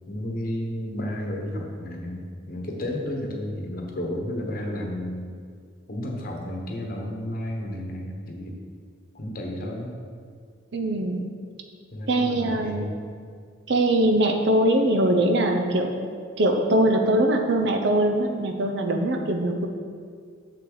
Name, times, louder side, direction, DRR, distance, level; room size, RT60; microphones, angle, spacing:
voice 1, 0.1-5.3 5.9-8.6 9.1-10.0 11.9-13.0, left 1 dB, 50° left, 1 dB, 1.0 m, -32 dB
voice 2, 10.7-11.3 12.1-12.8 13.7-15.9 16.4-19.7, right 1 dB, 60° right, 4 dB, 0.7 m, -22 dB
6.7 x 6.0 x 3.9 m, 2.1 s
head